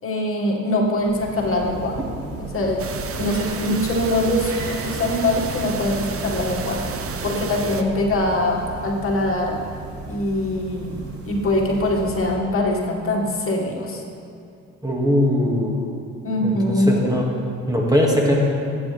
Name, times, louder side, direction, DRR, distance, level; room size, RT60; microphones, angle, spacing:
voice 1, 0.0-2.0 2.5-2.9 3.2-9.6 10.1-11.0 11.3-14.0 16.2-17.2, left 1 dB, 45° left, -1 dB, 2.1 m, -23 dB
sound 1, 0.8-12.6, right 3 dB, 70° right, 2.8 m, -36 dB
sound 2, 2.8-7.8, right 5 dB, 45° right, 0.9 m, -31 dB
voice 2, 14.8-15.7 16.4-17.3 17.7-18.4, equal, 10° right, -2 dB, 2.1 m, -20 dB
21.0 x 9.1 x 3.5 m, 2.5 s
cardioid pair, 90°, 30 cm